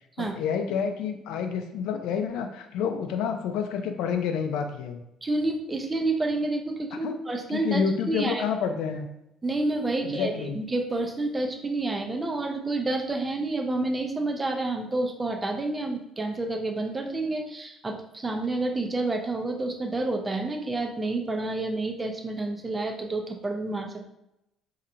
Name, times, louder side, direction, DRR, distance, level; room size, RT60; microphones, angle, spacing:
voice 1, 0.2-5.0 7.0-7.2 7.5-9.1 10.0-10.6, left 6 dB, 80° left, 6 dB, 0.5 m, -29 dB
voice 2, 5.2-8.4 9.4-24.0, right 2 dB, 15° right, 3 dB, 0.5 m, -29 dB
4.3 x 2.8 x 2.5 m, 0.85 s
cardioid pair, 140°, 0 cm